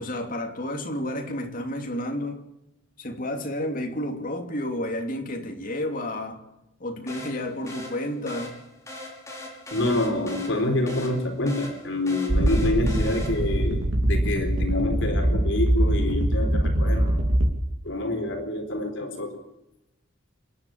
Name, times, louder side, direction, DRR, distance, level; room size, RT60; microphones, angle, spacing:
voice 1, 0.0-2.4 3.0-6.4 6.8-8.5, left 1 dB, 40° left, 4 dB, 3.0 m, -31 dB
sound 1, 7.1-13.7, left 1 dB, 15° left, 5.6 m, -41 dB
voice 2, 9.7-17.2 17.8-19.4, left 1 dB, 65° left, 5 dB, 4.0 m, -27 dB
sound 2, 12.3-17.5, right 1 dB, 70° right, 2.7 m, -23 dB
27.0 x 11.0 x 8.8 m, 0.90 s
head